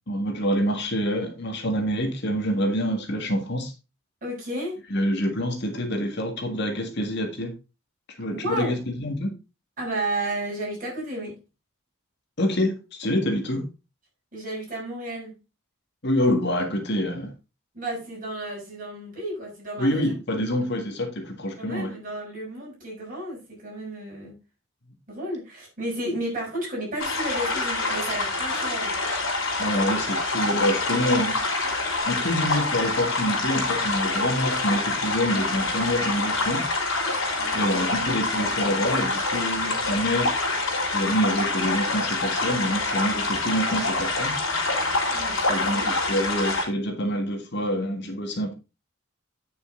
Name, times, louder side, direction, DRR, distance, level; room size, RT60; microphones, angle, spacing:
voice 1, 0.1-3.7 4.9-7.5 8.2-9.3 12.4-13.7 16.0-17.3 19.8-21.9 29.6-31.4 32.1-36.6 37.5-40.4 40.9-44.4 45.5-48.5, equal, 55° left, 1.8 m, -26 dB
voice 2, 4.2-4.8 8.3-8.8 9.8-11.4 14.3-15.3 17.7-20.1 21.6-24.4 25.1-28.9 37.4-37.9 45.1-45.8, right 1 dB, 40° right, 6.2 m, -32 dB
sound 1, 27.0-46.6, left 3 dB, 70° left, 3.8 m, -26 dB
8.9 x 6.8 x 3.8 m
head